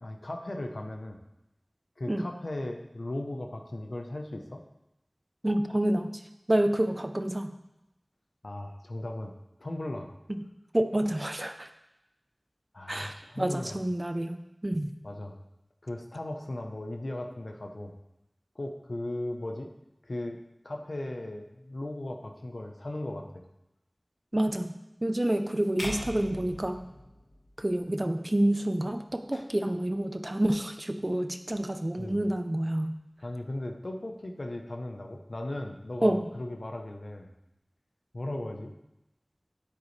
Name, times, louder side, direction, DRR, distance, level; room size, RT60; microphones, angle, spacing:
voice 1, 0.0-1.2 2.0-4.6 8.4-9.3 9.6-10.2 12.7-13.8 15.0-15.4 15.8-17.9 18.5-19.7 20.0-23.4 29.3-29.4 32.0-32.2 33.2-37.3 38.1-38.8, left 1 dB, 85° left, 3 dB, 0.9 m, -37 dB
voice 2, 5.4-6.1 6.5-7.5 10.3-10.4 10.7-11.7 12.9-14.4 14.6-14.9 24.3-24.7 25.0-26.8 27.6-33.0 36.0-36.2, right 1 dB, 40° right, 8 dB, 0.7 m, -28 dB
sound 1, 25.8-28.0, equal, 40° left, 1.5 m, -40 dB
9.9 x 8.4 x 3.3 m, 0.91 s
wide cardioid pair, 40°, 0 cm